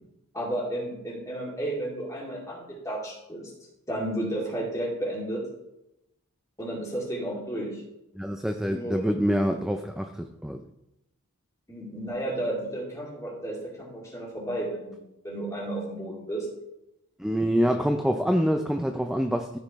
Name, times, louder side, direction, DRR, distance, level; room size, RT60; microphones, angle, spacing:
voice 1, 0.3-3.5 3.9-5.4 6.6-7.8 8.7-9.0 11.7-16.5, right 1 dB, 15° left, -4 dB, 2.4 m, -32 dB
voice 2, 8.2-10.6 17.2-19.6, equal, ahead, 6 dB, 0.3 m, -26 dB
14.0 x 5.5 x 3.1 m, 0.88 s
head